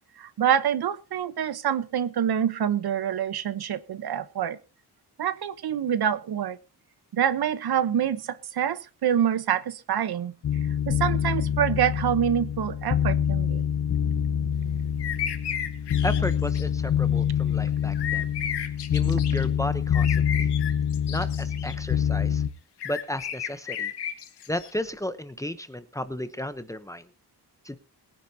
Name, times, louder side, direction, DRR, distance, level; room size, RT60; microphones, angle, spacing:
voice 1, 0.2-4.6 5.2-6.6 7.1-10.3 10.9-13.6, right 9 dB, 70° right, 1.1 m, -26 dB
sound 1, 10.4-22.5, left 8 dB, 50° left, 1.0 m, -26 dB
sound 2, 15.0-16.6 17.9-19.5 19.9-21.7 22.8-24.7, left 9 dB, 80° left, 1.7 m, -33 dB
voice 2, 16.0-18.3 18.9-20.5 21.1-22.4 22.8-23.9 24.5-27.1 27.6-27.8, left 1 dB, 10° left, 0.9 m, -33 dB
22.0 x 10.0 x 2.8 m
wide cardioid pair, 145°, 40 cm